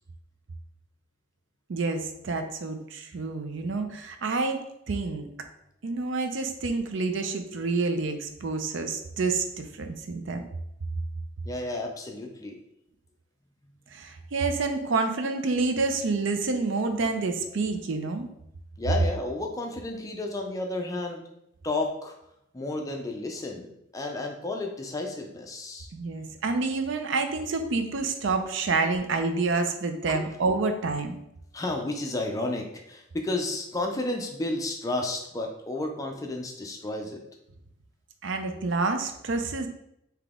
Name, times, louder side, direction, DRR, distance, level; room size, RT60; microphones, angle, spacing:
voice 1, 1.7-5.3 5.8-10.4 13.9-18.3 25.9-31.2 38.2-39.7, right 3 dB, 60° right, 7 dB, 0.4 m, -28 dB
voice 2, 11.4-12.6 18.8-21.2 21.6-22.2 22.5-25.9 30.1-30.3 31.5-37.2, left 2 dB, 15° left, 2 dB, 0.4 m, -32 dB
3.9 x 2.8 x 3.6 m, 0.80 s
head